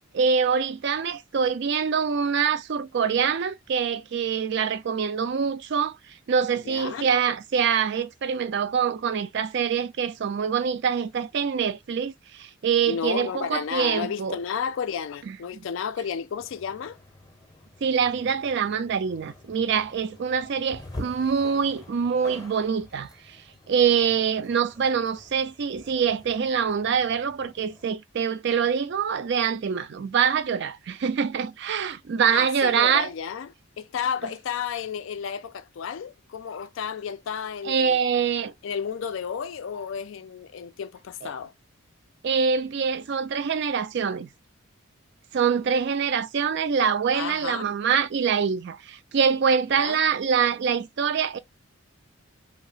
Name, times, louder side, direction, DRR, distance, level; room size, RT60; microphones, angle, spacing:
voice 1, 0.1-6.0 6.3-14.4 15.5-15.6 17.8-23.4 23.7-33.1 37.6-38.5 42.2-44.3 45.3-51.4, right 6 dB, 55° right, 0.4 m, -25 dB
voice 2, 6.7-7.1 12.9-17.0 32.3-38.0 38.6-41.5 47.1-47.7 49.7-50.0, left 7 dB, 65° left, 0.3 m, -32 dB
sound 1, 16.4-27.8, left 1 dB, 20° left, 0.7 m, -46 dB
2.8 x 2.0 x 3.8 m
head